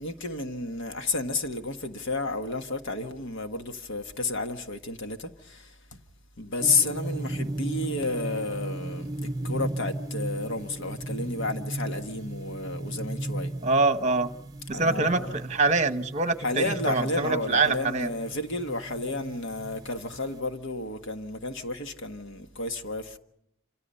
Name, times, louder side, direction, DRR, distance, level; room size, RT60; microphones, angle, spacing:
voice 1, 0.0-6.0 6.4-13.5 14.7-15.4 16.4-23.2, left 3 dB, 60° left, 1.5 m, -31 dB
sound 1, 6.6-20.4, right 1 dB, 20° right, 0.9 m, -36 dB
voice 2, 13.6-14.3 14.7-18.1, right 3 dB, 35° right, 1.1 m, -25 dB
28.0 x 27.0 x 5.6 m
head